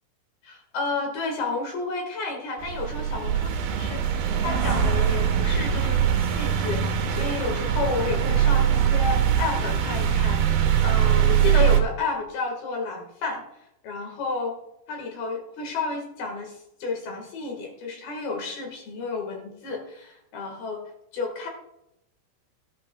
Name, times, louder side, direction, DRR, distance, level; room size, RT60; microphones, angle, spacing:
voice 1, 0.4-13.4 13.8-14.5 14.9-20.8 21.1-21.5, left 4 dB, 60° left, 2 dB, 2.8 m, -31 dB
sound 1, 2.6-11.8, right 9 dB, 70° right, 2.5 m, -22 dB
18.0 x 11.5 x 2.2 m, 0.82 s
omnidirectional pair, 5.9 m